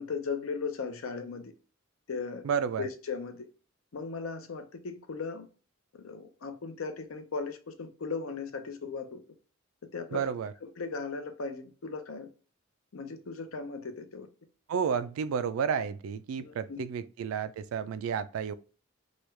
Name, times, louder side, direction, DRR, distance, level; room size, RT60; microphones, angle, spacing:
voice 1, 0.0-1.5 2.1-2.4 2.8-3.5 3.9-5.5 6.0-9.2 9.9-10.3 10.6-12.3 12.9-14.3 16.4-16.8, left 4 dB, 75° left, 0.5 m, -37 dB
voice 2, 2.4-2.8 10.1-10.5 14.7-18.5, right 7 dB, 85° right, 0.3 m, -31 dB
3.1 x 2.3 x 3.1 m
head